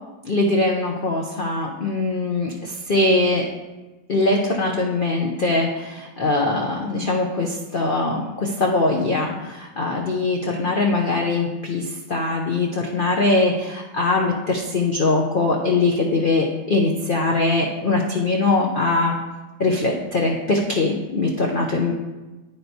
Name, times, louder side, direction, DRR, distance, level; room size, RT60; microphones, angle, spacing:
voice 1, 0.2-3.5 4.1-19.2 19.6-21.9, left 2 dB, 75° left, -1 dB, 0.4 m, -22 dB
12.0 x 4.4 x 2.7 m, 1.2 s
omnidirectional pair, 1.8 m